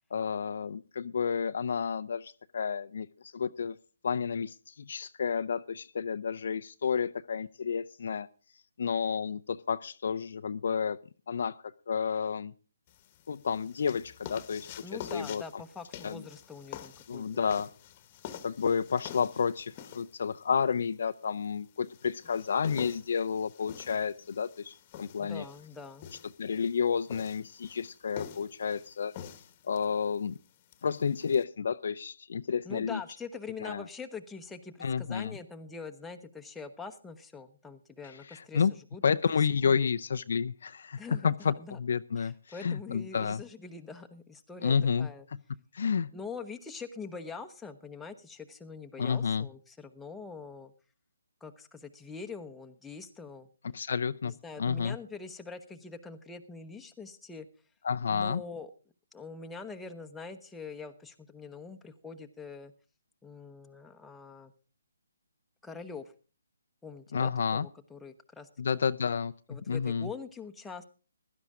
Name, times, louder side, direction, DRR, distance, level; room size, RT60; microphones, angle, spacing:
voice 1, 0.1-3.8 4.0-8.3 8.8-11.0 11.3-12.5 13.3-14.7 15.1-15.4 16.0-16.2 17.1-17.7 18.4-25.4 26.4-29.1 29.6-30.4 30.8-33.0 33.6-33.9 34.8-35.3 38.3-38.7 39.0-42.3 42.6-43.4 44.6-45.1 45.7-46.1 49.0-49.5 53.6-54.3 54.6-55.0 57.8-58.4 67.1-67.7 68.6-70.1, left 6 dB, 60° left, 11 dB, 0.6 m, -30 dB
sound 1, 12.9-31.4, left 10 dB, 30° left, 1.2 m, -48 dB
voice 2, 14.8-17.4 25.2-26.1 32.6-38.6 38.9-39.0 39.3-39.8 41.0-41.8 42.2-45.2 46.1-50.7 51.4-53.5 54.2-57.5 58.1-58.7 59.1-62.7 63.2-64.5 65.6-66.1 66.8-68.5 69.5-70.8, left 4 dB, 5° left, 4 dB, 1.0 m, -44 dB
16.0 x 12.0 x 3.7 m, 0.35 s
figure-of-eight pair, 145°, 0 cm